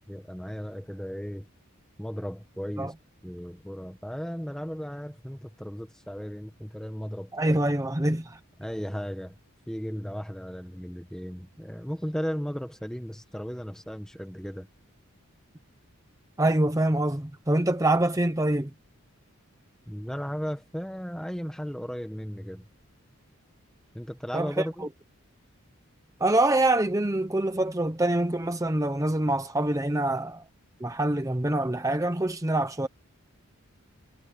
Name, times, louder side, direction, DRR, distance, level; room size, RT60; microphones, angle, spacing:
voice 1, 0.0-1.5 2.0-2.9 3.2-7.6 8.6-9.4 9.7-14.7 19.9-22.7 23.9-24.9, equal, 5° left, 1.3 m, -35 dB
voice 2, 7.3-8.4 16.4-18.7 24.3-24.9 26.2-30.4 30.8-32.9, right 1 dB, 15° right, 0.8 m, -25 dB
head